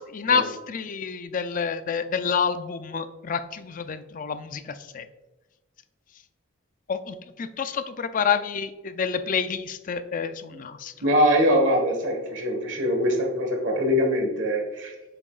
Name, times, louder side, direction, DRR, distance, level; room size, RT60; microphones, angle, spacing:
voice 1, 0.0-5.1 6.9-10.9, left 6 dB, 40° left, 11 dB, 0.4 m, -28 dB
voice 2, 11.0-14.9, equal, 65° right, 2 dB, 1.6 m, -23 dB
7.6 x 6.0 x 2.5 m, 1.1 s
head